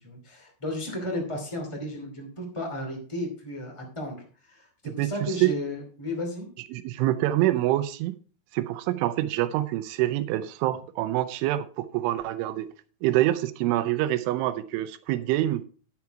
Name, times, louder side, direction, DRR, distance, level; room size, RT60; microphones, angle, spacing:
voice 1, 0.0-4.2 4.5-6.5, left 1 dB, 15° left, 1.0 m, -34 dB
voice 2, 6.7-8.2 8.5-12.7 13.0-15.6, right 15 dB, 85° right, 3.0 m, -26 dB
10.5 x 7.1 x 4.6 m
omnidirectional pair, 5.6 m